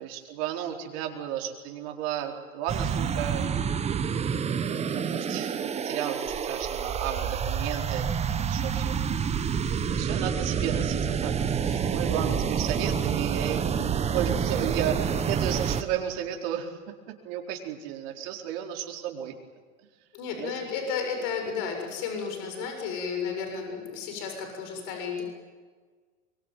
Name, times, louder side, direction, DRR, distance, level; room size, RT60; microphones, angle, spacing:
voice 1, 0.0-3.5 4.8-9.0 9.9-16.7 17.2-19.3 20.4-20.5, right 10 dB, 50° right, 2 dB, 4.5 m, -33 dB
sound 1, 2.7-15.8, right 7 dB, 15° right, 1.2 m, -28 dB
voice 2, 12.2-12.8 20.1-25.2, left 6 dB, 45° left, 4 dB, 7.1 m, -33 dB
23.5 x 23.5 x 9.3 m, 1.5 s
supercardioid pair, 140°, 42 cm